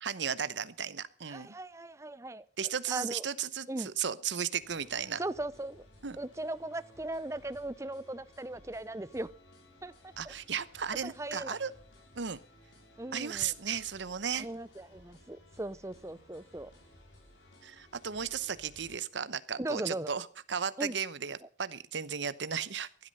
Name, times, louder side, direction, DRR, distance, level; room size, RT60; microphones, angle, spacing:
voice 1, 0.0-1.5 2.6-5.2 6.0-6.2 10.2-11.7 12.1-12.4 13.1-14.5 17.6-23.1, right 7 dB, 75° right, 16 dB, 0.9 m, -35 dB
voice 2, 1.3-2.4 2.9-3.3 3.7-3.9 5.2-5.9 6.2-9.3 9.8-9.9 10.2-10.3 11.0-11.6 13.0-13.5 14.3-16.7 19.6-20.1 20.8-21.0, right 1 dB, 15° right, 16 dB, 0.6 m, -38 dB
sound 1, 4.6-19.0, left 1 dB, 90° left, 5.9 m, -58 dB
16.0 x 12.0 x 5.4 m, 0.41 s
head